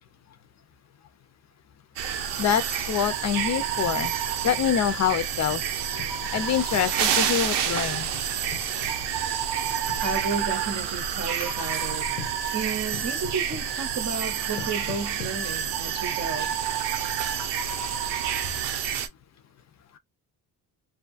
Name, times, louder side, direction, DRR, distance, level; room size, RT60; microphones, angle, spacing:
sound 1, 2.0-19.1, right 8 dB, 80° right, 0.7 m, -28 dB
voice 1, 2.4-4.2 4.4-5.6 6.3-8.1, left 9 dB, 45° left, 0.5 m, -25 dB
sound 2, 2.8-2.9 3.2-3.3 4.1-5.3 6.0-6.9 7.7-9.1 9.9-10.1 10.9-11.1 11.4-11.7 12.2-12.5 12.9-13.7 14.6-15.4, left 9 dB, 90° left, 0.8 m, -42 dB
voice 2, 10.0-12.1 12.5-16.5, right 4 dB, 40° right, 0.7 m, -32 dB
2.6 x 2.4 x 2.5 m
cardioid pair, 170°, 40 cm